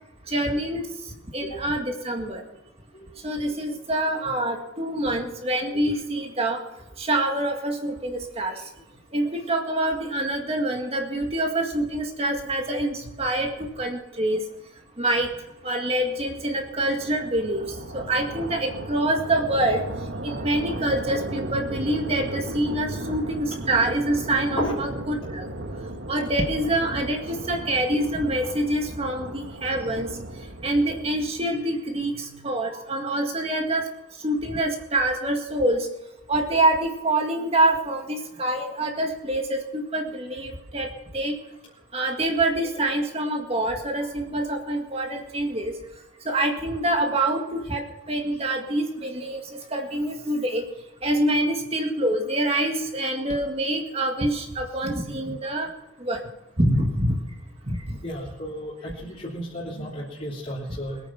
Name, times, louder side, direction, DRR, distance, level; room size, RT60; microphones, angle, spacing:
voice 1, 0.3-2.4 3.2-6.6 7.0-8.6 9.1-14.4 15.0-15.3 15.6-19.8 20.2-25.5 26.1-30.2 30.6-33.9 34.2-35.9 36.3-41.4 41.9-45.7 46.2-50.6 51.0-55.7 56.0-56.2 56.6-57.3 57.6-58.0 60.7-60.8, right 1 dB, 30° right, 2 dB, 2.0 m, -26 dB
sound 1, 15.3-31.6, right 1 dB, 65° right, 1.4 m, -36 dB
voice 2, 58.0-61.0, equal, 35° left, -7 dB, 3.2 m, -33 dB
22.0 x 9.2 x 5.8 m, 0.97 s
head